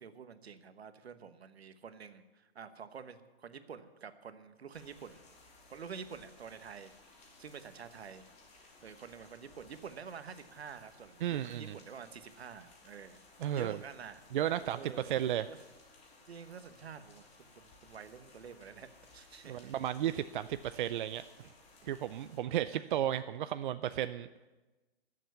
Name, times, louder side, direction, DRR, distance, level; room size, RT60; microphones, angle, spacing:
voice 1, 0.0-5.2 5.7-6.9 7.4-8.3 8.6-13.2 13.5-14.2 14.7-15.1 15.5-15.6 16.3-17.2 17.6-18.9 19.1-19.9 22.1-23.0, right 6 dB, 80° right, 11 dB, 1.2 m, -48 dB
sound 1, 4.7-22.4, left 3 dB, 20° left, 2.5 m, -60 dB
voice 2, 11.2-11.7 13.4-13.8 14.3-15.5 19.4-21.2 21.8-24.3, right 11 dB, 50° right, 12 dB, 0.5 m, -33 dB
13.5 x 7.4 x 9.4 m, 1.2 s
hypercardioid pair, 130°, 31 cm